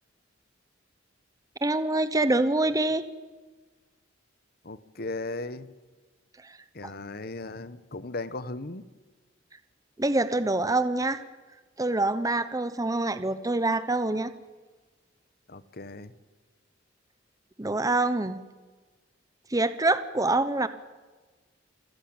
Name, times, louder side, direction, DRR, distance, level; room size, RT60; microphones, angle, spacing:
voice 1, 1.6-3.0 6.4-6.5 10.0-11.2 11.8-14.3 17.6-18.4 19.5-20.7, right 2 dB, 20° right, 12 dB, 1.0 m, -25 dB
voice 2, 4.6-5.7 6.7-8.8 15.5-16.1, left 2 dB, 50° left, 15 dB, 1.1 m, -37 dB
27.0 x 15.0 x 8.9 m, 1.3 s
head